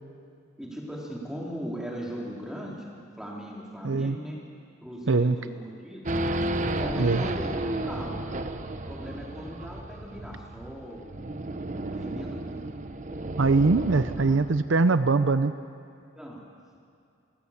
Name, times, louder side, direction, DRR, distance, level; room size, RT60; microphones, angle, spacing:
voice 1, 0.6-2.9 3.2-4.4 4.8-6.0 6.6-8.2 8.9-11.1 11.9-12.7 14.3-14.4 16.1-16.5, equal, 5° right, -3 dB, 3.3 m, -38 dB
voice 2, 3.8-4.2 5.1-5.4 7.0-7.2 13.4-15.5, right 3 dB, 70° right, 12 dB, 0.6 m, -22 dB
Race car auto racing / Idling / Accelerating revving vroom, 6.0-14.7, right 1 dB, 35° right, 0.8 m, -33 dB
28.5 x 15.0 x 7.2 m, 2.4 s
head